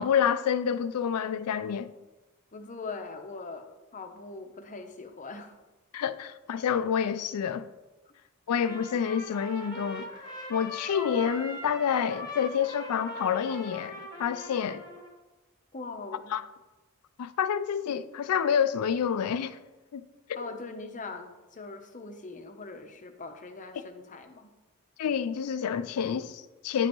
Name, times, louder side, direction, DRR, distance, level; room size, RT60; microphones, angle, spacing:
voice 1, 0.0-1.9 5.9-7.7 8.5-10.1 10.5-14.8 16.3-16.4 17.2-19.6 19.9-20.0 25.0-26.9, left 7 dB, 80° left, 0.4 m, -28 dB
voice 2, 2.5-5.5 15.7-16.4 20.3-24.5, left 3 dB, 35° left, 0.7 m, -41 dB
Trumpet, 8.6-15.1, left 1 dB, 20° left, 1.1 m, -41 dB
9.6 x 5.2 x 3.0 m
head